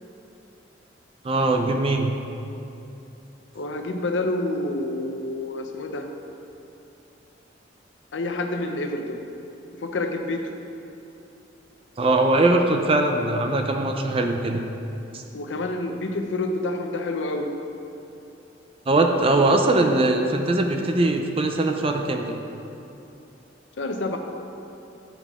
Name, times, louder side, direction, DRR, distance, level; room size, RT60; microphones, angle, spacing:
voice 1, 1.2-2.1 12.0-14.6 15.1-15.2 18.9-22.4, right 2 dB, 30° right, 4 dB, 0.5 m, -21 dB
voice 2, 3.5-6.1 8.1-9.2 9.8-10.4 15.3-17.5 23.8-24.2, left 2 dB, 80° left, 4 dB, 0.6 m, -28 dB
8.8 x 5.4 x 3.6 m, 2.9 s
head